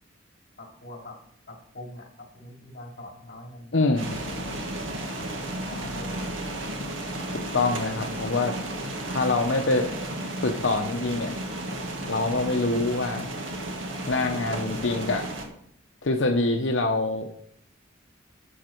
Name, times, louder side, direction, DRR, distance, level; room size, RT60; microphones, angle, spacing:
voice 1, 0.6-1.2 1.5-3.7 4.1-4.8 5.3-6.3, left 1 dB, 50° left, 1 dB, 2.8 m, -44 dB
voice 2, 3.7-4.1 7.3-8.5 9.1-9.9 10.4-11.3 12.1-13.3 14.1-15.3 16.0-17.3, left 2 dB, 70° left, 2 dB, 0.9 m, -25 dB
sound 1, 4.0-15.4, right 1 dB, 80° right, 2.0 m, -33 dB
11.5 x 7.9 x 4.5 m, 0.68 s
head